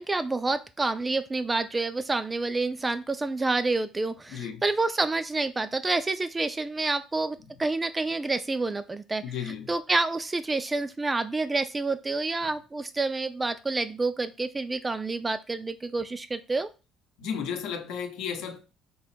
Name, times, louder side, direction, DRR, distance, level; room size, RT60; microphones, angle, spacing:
voice 1, 0.0-16.7, right 3 dB, 15° right, 0.3 m, -28 dB
voice 2, 4.3-4.6 7.5-7.6 9.2-9.7 17.2-18.6, left 7 dB, 75° left, 0.8 m, -34 dB
3.6 x 2.9 x 4.3 m
cardioid pair, 140°, 0 cm